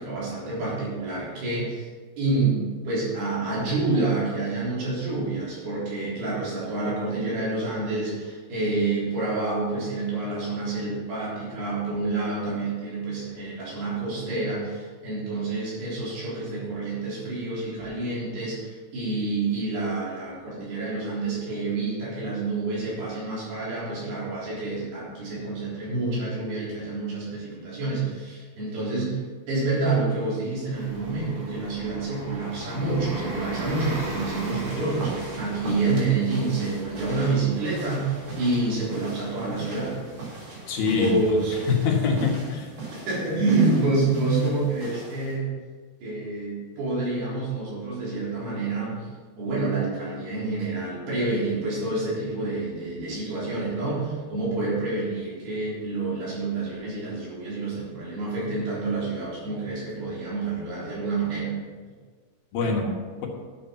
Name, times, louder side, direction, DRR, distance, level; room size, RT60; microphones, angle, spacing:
voice 1, 0.0-1.9 2.2-40.0 40.8-41.6 43.1-45.5 46.0-49.1 49.4-61.5 62.6-62.7, right 3 dB, 85° right, -7 dB, 5.9 m, -28 dB
Bus, 30.7-43.0, right 2 dB, 35° right, 3.1 m, -38 dB
sound 1, 34.6-45.3, right 3 dB, 50° right, 4.7 m, -40 dB
voice 2, 40.7-41.1 41.7-42.7 62.5-62.9, left 5 dB, 70° left, 0 dB, 3.3 m, -24 dB
11.5 x 7.4 x 5.8 m, 1.5 s
omnidirectional pair, 4.4 m